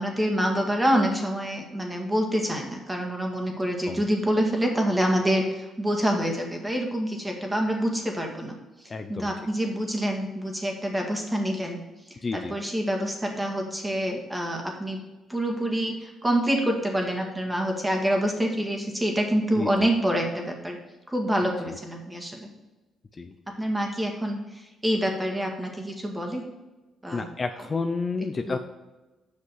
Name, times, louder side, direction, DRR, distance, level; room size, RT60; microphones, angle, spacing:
voice 1, 0.0-8.6 9.1-11.8 12.3-15.0 15.3-20.8 21.1-22.5 23.5-26.4 27.0-27.3 28.5-28.6, equal, 10° right, 1 dB, 2.1 m, -26 dB
voice 2, 8.9-9.3 12.2-12.5 19.6-19.7 23.2-23.3 27.1-28.6, left 4 dB, 35° left, 7 dB, 0.6 m, -30 dB
8.0 x 5.8 x 4.7 m, 1.1 s
cardioid pair, 90°, 0 cm